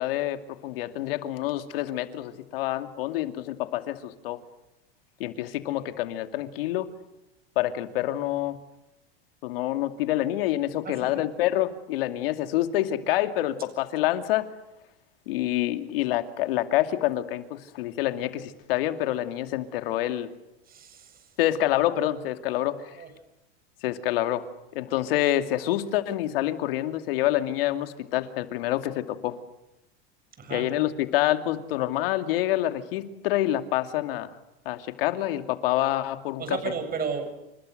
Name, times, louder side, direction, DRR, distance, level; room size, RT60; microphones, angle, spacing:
voice 1, 0.0-4.4 5.2-6.9 7.6-8.6 9.4-14.5 15.3-20.3 21.4-23.0 23.8-24.4 24.7-29.4 30.5-34.3 34.7-36.6, left 14 dB, 75° left, 8 dB, 2.6 m, -27 dB
voice 2, 10.8-11.2 20.7-21.3 22.5-22.7 22.9-23.1 30.4-30.8 36.4-37.3, right 6 dB, 30° right, 8 dB, 7.6 m, -34 dB
30.0 x 27.5 x 6.6 m, 0.94 s
supercardioid pair, 120°, 29 cm